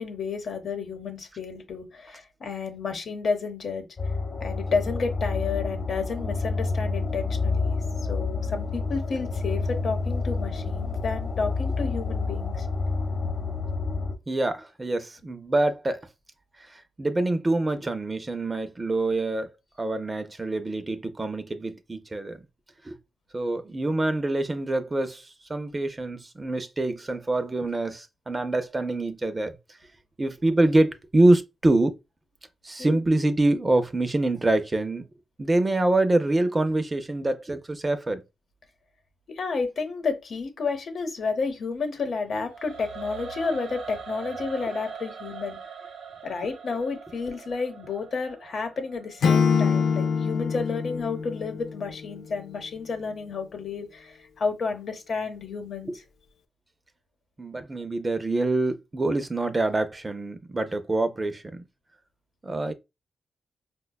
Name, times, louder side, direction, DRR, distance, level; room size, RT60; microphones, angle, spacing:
voice 1, 0.0-3.8 4.4-7.8 8.1-12.7 32.8-33.0 39.3-45.6 46.2-55.9, left 4 dB, 65° left, 0.8 m, -31 dB
Forgotten Passage, 4.0-14.1, left 3 dB, 35° left, 0.8 m, -29 dB
voice 2, 14.3-16.1 16.7-19.5 19.8-22.4 22.8-22.9 23.3-29.5 30.2-31.9 32.6-35.0 35.4-38.2 55.9-56.0 57.4-61.6 62.4-62.7, right 2 dB, 25° right, 0.4 m, -25 dB
Singing / Musical instrument, 42.5-49.6, right 6 dB, 80° right, 0.7 m, -41 dB
Acoustic guitar / Strum, 49.2-52.3, left 6 dB, 85° left, 0.3 m, -24 dB
4.9 x 2.2 x 2.2 m
cardioid pair, 100°, 0 cm